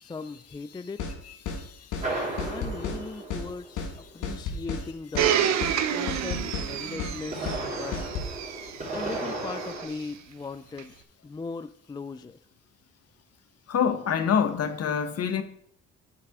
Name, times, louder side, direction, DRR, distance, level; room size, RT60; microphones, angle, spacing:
voice 1, 0.0-1.0 2.5-5.6 5.9-8.0 8.9-10.9 11.2-12.4, left 4 dB, 15° left, 0.3 m, -38 dB
sound 1, 1.0-1.2 1.5-1.6 1.9-2.1 2.4-3.0 3.3-3.5 3.8-3.9 4.2-4.8 5.1-5.3 5.6-5.8 6.1-6.7 7.0-7.2 7.5-7.6 7.9-8.3, left 5 dB, 85° left, 1.6 m, -32 dB
sound 2, 2.0-4.1 7.0-9.9, right 2 dB, 25° right, 3.6 m, -34 dB
Domestic sounds home sounds, 5.2-10.0 10.8-10.9, right 9 dB, 65° right, 0.8 m, -29 dB
voice 2, 13.7-15.4, left 7 dB, 55° left, 1.0 m, -26 dB
10.0 x 5.8 x 3.6 m
cardioid pair, 90°, 30 cm